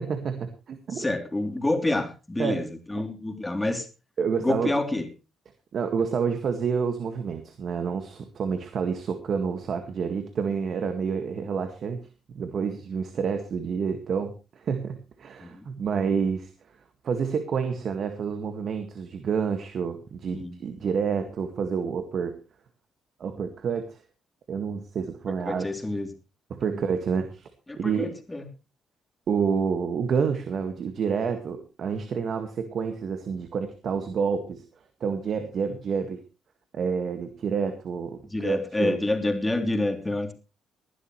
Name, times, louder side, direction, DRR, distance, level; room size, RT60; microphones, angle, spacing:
voice 1, 0.0-1.0 2.4-2.6 4.2-4.7 5.7-12.0 12.3-16.5 17.0-22.3 23.2-24.0 24.5-25.7 26.5-27.5 27.8-28.1 29.3-34.6 35.0-36.2 36.7-39.0, right 6 dB, 60° right, 7 dB, 1.8 m, -28 dB
voice 2, 0.9-3.9 4.4-5.1 15.4-15.7 20.3-20.5 25.5-26.1 26.6-26.8 27.7-28.5 38.3-40.3, left 2 dB, 15° left, 5 dB, 3.2 m, -28 dB
20.0 x 11.5 x 3.2 m, 0.31 s
cardioid pair, 90°, 0 cm